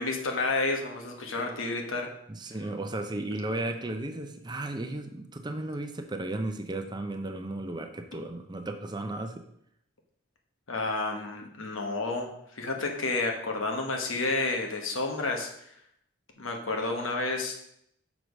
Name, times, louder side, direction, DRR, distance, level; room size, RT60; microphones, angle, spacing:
voice 1, 0.0-2.1 10.7-12.3 12.5-15.5 16.4-17.5, left 3 dB, 90° left, 2 dB, 1.3 m, -30 dB
voice 2, 2.3-9.4, right 2 dB, 20° right, 6 dB, 0.6 m, -34 dB
6.1 x 4.9 x 5.3 m, 0.73 s
head